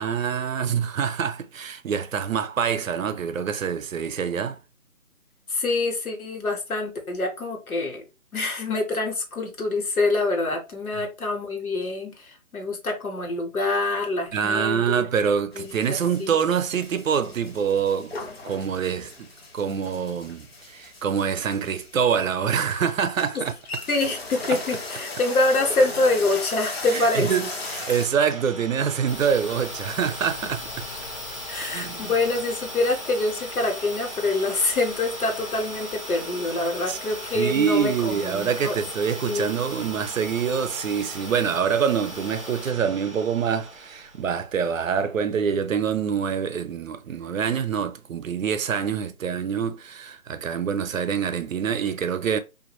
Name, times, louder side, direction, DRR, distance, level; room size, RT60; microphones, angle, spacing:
voice 1, 0.0-4.6 10.9-11.0 14.3-18.1 18.4-19.3 19.5-23.5 24.5-24.6 26.9-30.9 31.7-32.1 36.9-37.0 37.3-52.4, right 7 dB, 65° right, 0.5 m, -25 dB
voice 2, 5.5-8.0 8.3-15.1 15.5-16.3 23.3-23.4 23.9-27.3 31.5-38.8 39.2-39.6, left 2 dB, 80° left, 1.2 m, -26 dB
sound 1, 15.5-28.1, left 3 dB, 45° left, 0.6 m, -37 dB
Idling, 26.6-44.3, right 1 dB, ahead, 0.4 m, -40 dB
sound 2, 29.1-44.7, left 3 dB, 65° left, 1.0 m, -40 dB
2.5 x 2.5 x 2.9 m
figure-of-eight pair, 160°, 42 cm